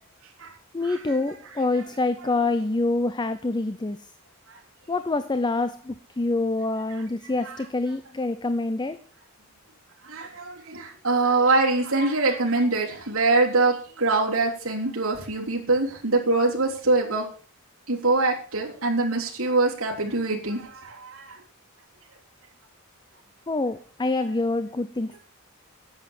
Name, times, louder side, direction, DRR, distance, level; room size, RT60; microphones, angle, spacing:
voice 1, 0.7-4.1 4.9-9.0 23.5-25.2, left 2 dB, 20° left, 12 dB, 0.6 m, -26 dB
voice 2, 10.0-17.3 17.9-21.4, right 3 dB, 65° right, -4 dB, 3.4 m, -24 dB
11.0 x 8.0 x 7.2 m, 0.42 s
head